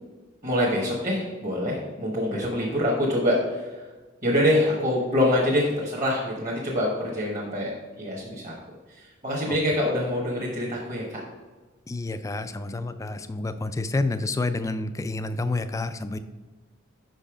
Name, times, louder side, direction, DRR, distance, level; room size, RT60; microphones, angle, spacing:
voice 1, 0.4-3.9 4.2-11.2, left 1 dB, 35° right, -4 dB, 1.4 m, -25 dB
voice 2, 11.9-16.2, left 2 dB, 15° left, 11 dB, 0.3 m, -29 dB
5.6 x 5.3 x 5.0 m, 1.3 s
head